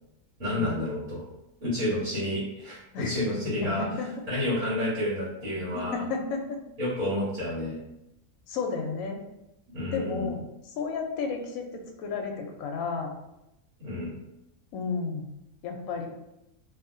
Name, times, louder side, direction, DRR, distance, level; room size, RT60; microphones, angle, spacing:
voice 1, 0.4-1.2 1.6-3.8 4.3-6.0 6.8-7.8 9.7-10.3 13.8-14.1, left 1 dB, 70° right, -10 dB, 1.7 m, -30 dB
voice 2, 3.8-4.1 5.6-6.6 8.5-9.2 9.9-10.5 10.8-13.1 14.7-15.3 15.6-16.1, left 4 dB, 75° left, 3 dB, 0.9 m, -32 dB
2.8 x 2.8 x 2.5 m, 0.88 s
omnidirectional pair, 1.5 m